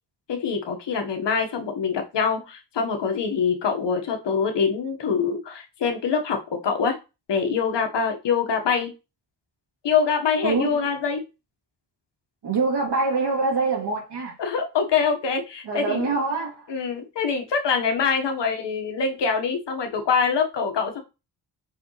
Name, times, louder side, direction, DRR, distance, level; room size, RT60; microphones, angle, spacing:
voice 1, 0.3-7.0 7.3-8.9 9.8-11.2 14.4-16.1 16.7-21.0, left 6 dB, 80° left, 1.7 m, -24 dB
voice 2, 10.4-10.9 12.4-14.4 15.6-16.7, right 4 dB, 70° right, 3.3 m, -25 dB
6.6 x 5.1 x 3.4 m
wide cardioid pair, 125°, 42 cm